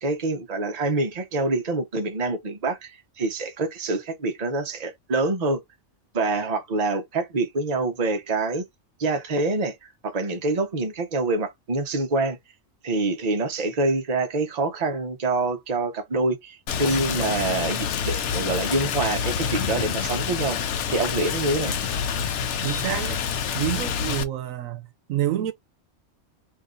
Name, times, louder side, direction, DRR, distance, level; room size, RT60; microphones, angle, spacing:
voice 1, 0.0-5.6 6.1-8.6 9.0-12.4 12.8-20.6 20.9-21.7, right 3 dB, 35° right, 0.9 m, -26 dB
Rain, 16.7-24.2, left 7 dB, 65° left, 0.9 m, -27 dB
voice 2, 22.6-23.3 23.5-25.5, right 12 dB, 85° right, 1.1 m, -28 dB
2.7 x 2.6 x 3.7 m
omnidirectional pair, 1.3 m